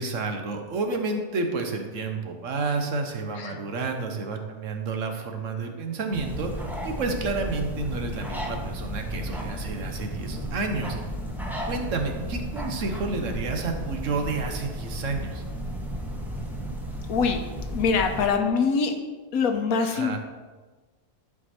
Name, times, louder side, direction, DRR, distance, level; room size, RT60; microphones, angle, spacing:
voice 1, 0.0-6.5 6.8-11.0 11.7-15.4 19.8-20.2, right 3 dB, 65° right, 4 dB, 1.2 m, -30 dB
sound 1, 6.1-18.3, equal, ahead, 0.8 m, -33 dB
voice 2, 17.1-17.4 17.7-18.9 19.3-20.2, left 5 dB, 80° left, 5 dB, 1.3 m, -24 dB
10.5 x 4.8 x 4.3 m, 1.3 s
omnidirectional pair, 1.5 m